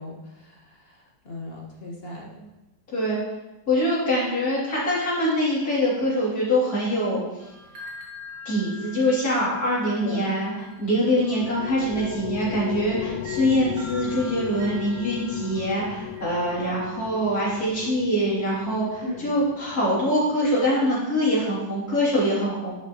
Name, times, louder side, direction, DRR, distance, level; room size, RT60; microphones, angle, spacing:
voice 1, 0.0-2.5 10.0-10.2 19.0-19.3, left 1 dB, 30° left, -3 dB, 1.7 m, -37 dB
voice 2, 3.7-7.2 7.8-7.9 8.5-10.5 10.8-22.8, equal, 50° left, -7 dB, 3.5 m, -24 dB
sound 1, 7.4-16.3, left 1 dB, 65° right, 1.9 m, -44 dB
sound 2, 10.8-20.6, left 10 dB, 70° left, 1.1 m, -36 dB
10.5 x 6.7 x 3.1 m, 0.99 s
omnidirectional pair, 2.1 m